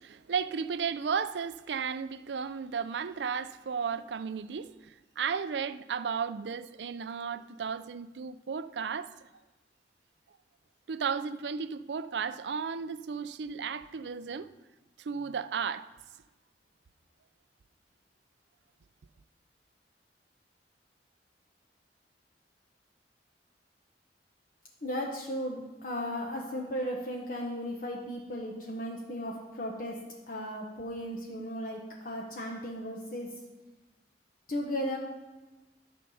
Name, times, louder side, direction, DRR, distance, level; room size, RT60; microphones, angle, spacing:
voice 1, 0.0-9.1 10.9-14.5 15.0-15.9, right 6 dB, 75° right, 0.4 m, -34 dB
voice 2, 24.8-33.4 34.5-35.0, equal, 50° left, 1.1 m, -36 dB
11.0 x 6.5 x 5.6 m
head